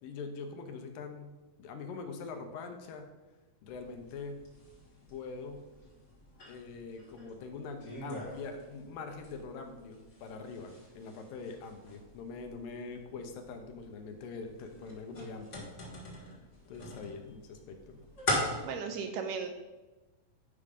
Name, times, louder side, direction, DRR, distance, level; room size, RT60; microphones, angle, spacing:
voice 1, 0.0-3.1 3.6-4.5 5.1-5.7 6.5-15.7 16.2-16.4 16.7-18.0, left 4 dB, 75° left, 5 dB, 2.5 m, -43 dB
sound 1, 3.7-18.6, left 1 dB, 45° left, 0.9 m, -42 dB
voice 2, 18.6-19.5, right 6 dB, 80° right, 5 dB, 2.1 m, -36 dB
9.8 x 5.1 x 5.2 m, 1.1 s
omnidirectional pair, 4.1 m